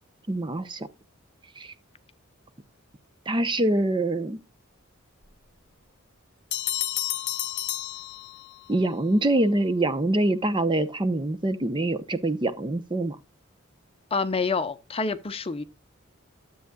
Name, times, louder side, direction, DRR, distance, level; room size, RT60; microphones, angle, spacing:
voice 1, 0.3-0.9 1.6-1.7 3.3-4.4 8.7-13.2, right 1 dB, 25° right, 0.7 m, -25 dB
sound 1, 6.5-8.7, left 14 dB, 55° left, 0.9 m, -31 dB
voice 2, 14.1-15.6, left 4 dB, 30° left, 0.7 m, -27 dB
13.0 x 7.9 x 2.3 m
head